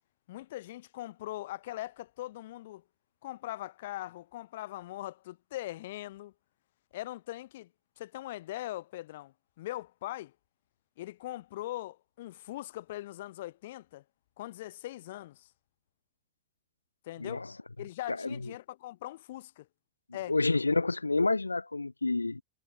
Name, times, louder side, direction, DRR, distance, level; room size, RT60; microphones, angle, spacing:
voice 1, 0.3-2.8 3.2-6.3 6.9-7.7 8.0-10.3 11.0-14.0 14.4-15.5 17.0-17.4 17.8-19.7 20.1-20.3, left 15 dB, 55° left, 3.2 m, -41 dB
voice 2, 17.2-17.5 18.1-18.5 20.3-22.4, left 3 dB, 80° left, 0.7 m, -29 dB
figure-of-eight pair, 90°, 0 cm